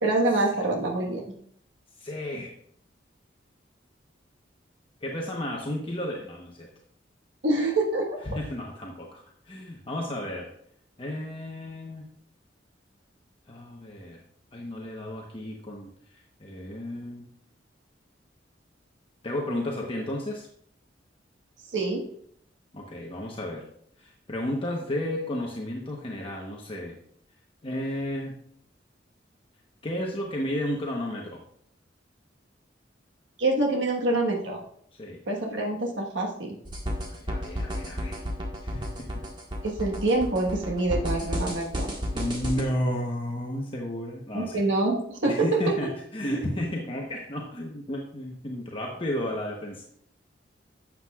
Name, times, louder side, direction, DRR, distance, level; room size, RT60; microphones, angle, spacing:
voice 1, 0.0-1.4 7.4-8.2 21.7-22.0 33.4-34.6 35.3-36.6 39.6-41.9 44.3-45.5, right 2 dB, 90° right, 0 dB, 1.4 m, -26 dB
voice 2, 2.0-2.5 5.0-6.7 8.2-10.5 11.0-12.1 13.5-14.2 14.5-17.3 19.2-20.5 22.7-23.7 24.0-27.0 27.6-28.4 29.8-31.4 35.0-35.2 37.2-38.2 38.6-39.1 42.1-44.6 45.2-49.8, left 1 dB, 30° left, -1 dB, 1.0 m, -33 dB
sound 1, 36.7-42.6, equal, 25° right, 1.5 m, -32 dB
12.0 x 7.7 x 2.4 m, 0.66 s
head